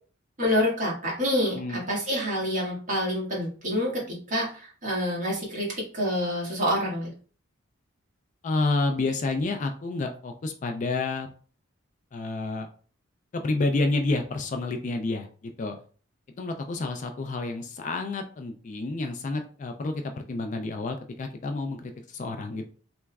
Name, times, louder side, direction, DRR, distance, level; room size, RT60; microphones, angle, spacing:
voice 1, 0.4-7.1, equal, 40° right, -5 dB, 1.5 m, -27 dB
voice 2, 8.4-11.3 12.1-12.7 13.3-15.8 16.4-22.7, left 3 dB, 35° left, 5 dB, 0.3 m, -29 dB
3.3 x 3.0 x 2.3 m, 0.40 s
head